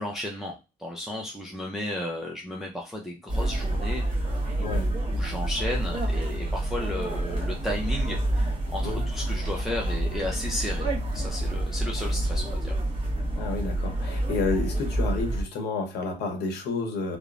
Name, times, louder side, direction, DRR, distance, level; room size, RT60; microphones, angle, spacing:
voice 1, 0.0-12.7, left 1 dB, ahead, -2 dB, 0.5 m, -34 dB
sound 1, 3.3-15.4, right 1 dB, 30° right, 1.4 m, -28 dB
voice 2, 13.3-17.2, left 3 dB, 80° left, 4 dB, 0.9 m, -30 dB
2.9 x 2.0 x 2.5 m, 0.27 s
cardioid pair, 110°, 17 cm